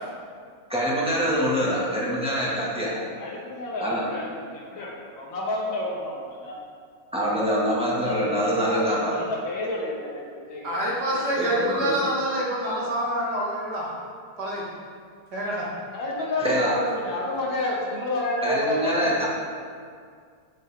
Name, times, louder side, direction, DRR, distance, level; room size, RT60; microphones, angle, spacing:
voice 1, 0.7-2.9 3.8-4.3 7.1-9.2 11.4-11.9 16.4-16.7 18.4-19.3, equal, 5° right, -7 dB, 1.5 m, -25 dB
voice 2, 2.7-6.6 8.0-10.7 11.1-11.5 15.9-19.3, left 1 dB, 80° left, -3 dB, 2.2 m, -30 dB
voice 3, 10.6-13.9 14.4-14.6 15.3-15.7, right 1 dB, 60° right, -5 dB, 2.2 m, -27 dB
8.0 x 7.3 x 3.5 m, 2.1 s
omnidirectional pair, 2.1 m